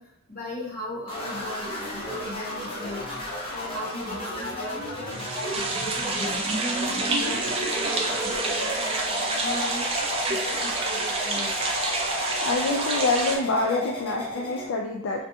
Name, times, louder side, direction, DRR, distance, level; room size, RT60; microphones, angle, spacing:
voice 1, 0.0-11.5, left 1 dB, 45° left, -8 dB, 1.4 m, -38 dB
sound 1, 1.1-14.7, left 1 dB, 25° left, 0.7 m, -33 dB
sound 2, 5.1-13.4, right 2 dB, 25° right, 0.3 m, -28 dB
voice 2, 12.4-15.3, left 3 dB, 65° left, 0 dB, 0.3 m, -26 dB
3.2 x 2.6 x 2.7 m, 0.74 s
head